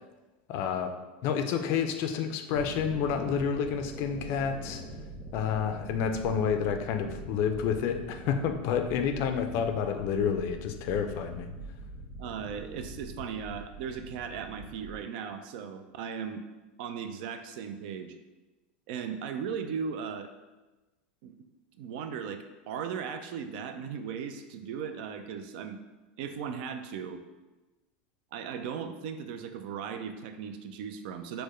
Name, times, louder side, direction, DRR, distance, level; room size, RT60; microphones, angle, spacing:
voice 1, 0.5-0.9 1.2-4.8 5.3-11.5, left 7 dB, 55° left, 7 dB, 0.4 m, -29 dB
sound 1, 2.5-15.0, right 1 dB, 25° right, 1.4 m, -43 dB
voice 2, 12.2-16.4 16.8-18.2 18.9-20.3 21.2-21.3 21.8-25.8 26.2-27.2 28.3-31.4, right 7 dB, 65° right, 8 dB, 0.3 m, -37 dB
4.3 x 2.1 x 3.1 m, 1.1 s
hypercardioid pair, 110°, 6 cm